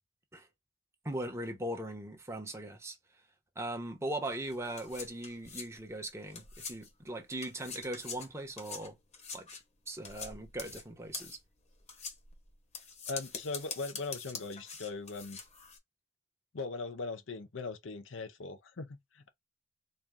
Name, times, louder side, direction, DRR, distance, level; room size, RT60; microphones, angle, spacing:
voice 1, 1.0-3.0 3.6-9.0 9.3-9.5 9.9-11.4, right 1 dB, 15° right, 1.0 m, -39 dB
sound 1, 4.2-7.0 7.3-15.8, left 5 dB, 35° left, 1.0 m, -45 dB
voice 2, 13.1-15.4 16.5-19.3, left 3 dB, 85° left, 0.7 m, -40 dB
4.3 x 2.3 x 3.6 m
head